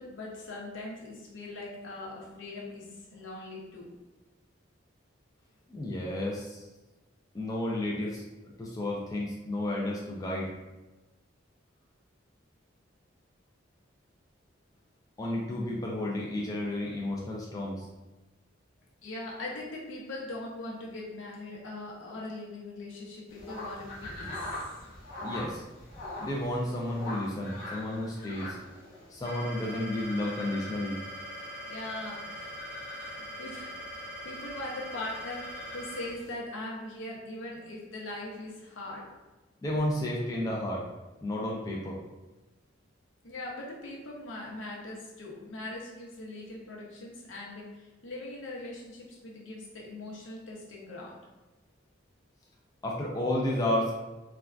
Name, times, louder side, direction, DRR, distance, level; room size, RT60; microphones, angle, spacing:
voice 1, 0.0-3.9 19.0-24.6 31.7-32.6 32.9-39.1 43.2-51.2, left 2 dB, 80° left, -3 dB, 0.7 m, -41 dB
voice 2, 5.7-6.6 7.3-10.5 15.2-17.9 25.2-25.6 26.2-28.6 29.1-31.0 39.6-40.9 41.2-42.0 52.8-54.0, left 1 dB, 20° left, -3 dB, 0.3 m, -32 dB
sound 1, 23.3-36.3, left 1 dB, 40° left, 0.9 m, -44 dB
sound 2, 29.2-36.1, equal, 25° right, 0.8 m, -42 dB
3.3 x 2.2 x 2.4 m, 1.1 s
head